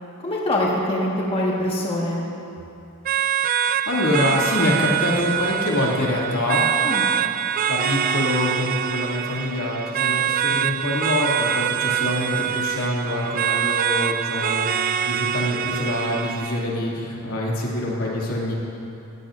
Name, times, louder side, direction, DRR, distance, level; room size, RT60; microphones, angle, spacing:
voice 1, 0.2-2.2 6.8-7.1, left 1 dB, 25° left, -4 dB, 1.5 m, -24 dB
sound 1, 3.1-16.6, right 9 dB, 40° right, 0.3 m, -24 dB
voice 2, 3.9-6.6 7.7-14.7 15.0-18.5, left 1 dB, 80° left, -4 dB, 2.5 m, -25 dB
17.5 x 15.0 x 2.6 m, 2.8 s
head